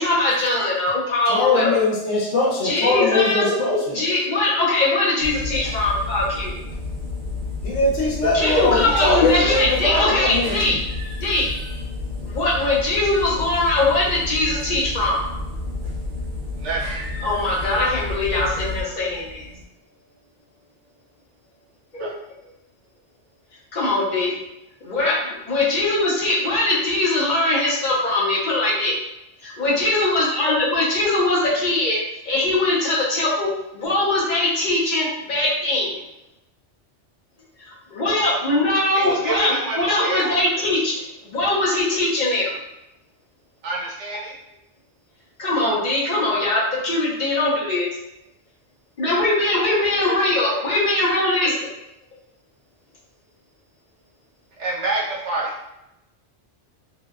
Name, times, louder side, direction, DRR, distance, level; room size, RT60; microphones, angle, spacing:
voice 1, 0.0-1.7 2.6-3.5 3.9-6.6 8.3-10.7 11.2-11.5 12.2-15.2 17.2-19.5 21.9-22.1 23.7-24.3 24.9-25.2 25.5-29.0 29.4-32.0 32.2-36.0 37.7-42.6 45.4-47.9 49.0-51.6, left 2 dB, 50° left, -5 dB, 0.6 m, -21 dB
voice 2, 1.3-4.0 7.6-10.8, left 2 dB, 85° left, -3 dB, 1.0 m, -21 dB
sound 1, 5.2-19.6, left 3 dB, 60° right, 0.6 m, -30 dB
voice 3, 38.9-40.2 43.6-44.3 54.6-55.7, right 3 dB, 80° right, -3 dB, 1.0 m, -27 dB
2.6 x 2.1 x 2.3 m, 0.86 s
omnidirectional pair, 1.2 m